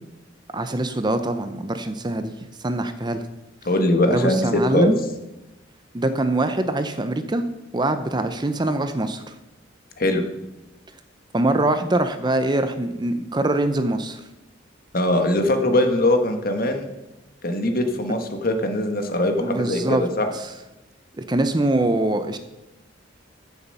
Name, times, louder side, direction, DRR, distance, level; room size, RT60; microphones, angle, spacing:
voice 1, 0.5-2.3 2.6-3.2 4.1-5.0 5.9-7.4 7.7-9.2 11.3-14.2 19.4-20.0 20.3-20.5 21.2-22.4, right 2 dB, 20° right, 9 dB, 0.6 m, -23 dB
voice 2, 3.6-4.9 10.0-10.2 14.9-16.9 17.4-20.3, left 1 dB, 45° left, 6 dB, 1.4 m, -21 dB
15.0 x 7.0 x 5.5 m, 0.99 s
head